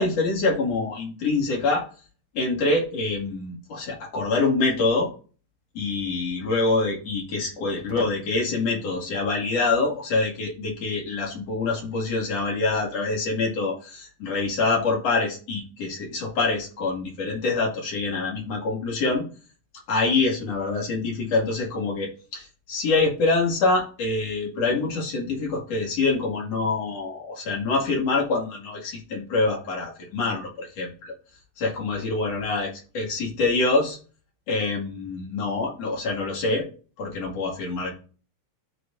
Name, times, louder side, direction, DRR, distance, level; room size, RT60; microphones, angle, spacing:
voice 1, 0.0-1.8 2.3-5.1 5.7-19.2 19.9-31.1 31.6-34.0 34.5-36.7 37.0-38.0, left 3 dB, 60° left, -2 dB, 3.3 m, -25 dB
12.5 x 4.9 x 2.6 m, 0.37 s
omnidirectional pair, 3.4 m